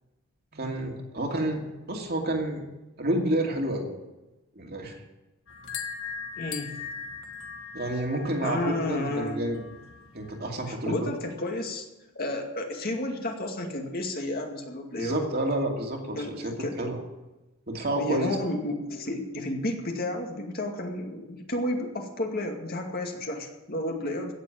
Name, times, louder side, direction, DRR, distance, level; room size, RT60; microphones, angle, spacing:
voice 1, 0.5-1.6 1.9-2.6 3.0-3.9 4.6-5.0 7.7-9.6 10.1-11.1 15.0-17.0 17.7-18.4, right 1 dB, 45° right, 1 dB, 2.5 m, -29 dB
sound 1, 5.5-10.5, left 6 dB, 65° left, 1.6 m, -40 dB
voice 2, 6.3-6.7 8.4-9.4 10.7-11.8 12.1-15.2 16.2-16.8 18.0-24.3, left 1 dB, 45° left, 2 dB, 2.2 m, -32 dB
16.5 x 7.4 x 9.2 m, 1.0 s
head